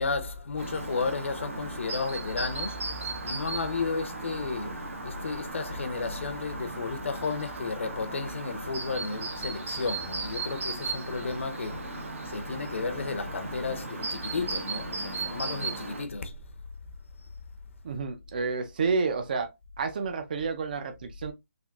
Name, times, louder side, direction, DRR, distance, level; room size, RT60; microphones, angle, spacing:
voice 1, 0.0-16.4, left 4 dB, 60° left, 0.6 m, -33 dB
Chirp tweet, 0.6-16.0, right 3 dB, 70° right, 1.0 m, -36 dB
voice 2, 17.8-19.5 19.8-21.3, right 4 dB, 35° right, 0.4 m, -30 dB
3.5 x 2.5 x 2.3 m
hypercardioid pair, 170°, 8 cm